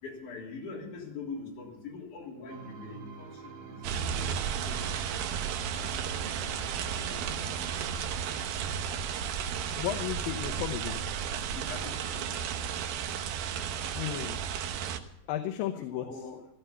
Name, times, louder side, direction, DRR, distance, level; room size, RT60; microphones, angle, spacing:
voice 1, 0.0-4.0 4.6-5.3 5.8-8.2 11.5-12.3 15.9-16.5, left 4 dB, 60° left, -1 dB, 4.8 m, -44 dB
Twilight three, 2.5-8.5, right 5 dB, 65° right, 3.9 m, -45 dB
sound 1, 3.8-15.0, right 8 dB, 85° right, 2.9 m, -33 dB
voice 2, 9.8-11.0 13.9-14.4 15.3-16.1, left 12 dB, 80° left, 6 dB, 2.7 m, -34 dB
16.5 x 13.5 x 5.6 m, 0.79 s
omnidirectional pair, 4.0 m